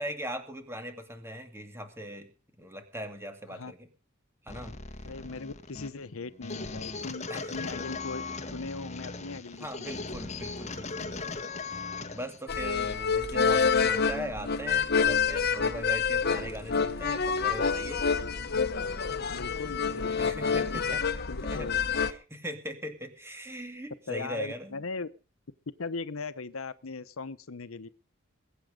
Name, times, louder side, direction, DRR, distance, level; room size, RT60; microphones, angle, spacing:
voice 1, 0.0-2.3 2.6-3.9 4.4-5.1 7.3-7.6 9.6-18.0 20.2-21.0 21.5-24.8, equal, 10° right, 6 dB, 2.5 m, -40 dB
sound 1, 4.5-12.4, left 3 dB, 35° left, 1.5 m, -38 dB
voice 2, 5.0-7.2 7.5-10.0 19.3-21.0 21.3-21.8 24.1-25.1 25.8-27.9, left 4 dB, 85° left, 14 dB, 0.9 m, -39 dB
sound 2, 12.5-22.1, left 5 dB, 50° left, 1.1 m, -27 dB
21.5 x 9.1 x 5.1 m, 0.34 s
head